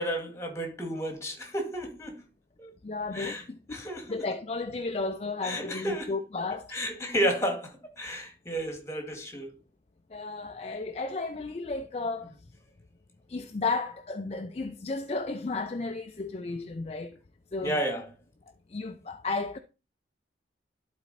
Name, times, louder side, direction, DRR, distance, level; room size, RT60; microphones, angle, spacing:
voice 1, 0.0-2.2 2.6-2.7 3.1-3.4 3.7-4.3 5.4-6.1 6.7-9.6 17.6-18.1, equal, 15° left, 1.9 m, -32 dB
voice 2, 2.8-6.8 10.1-12.3 13.3-17.2 17.5-17.8 18.7-19.6, left 3 dB, 35° left, 0.4 m, -33 dB
11.5 x 4.2 x 4.1 m
head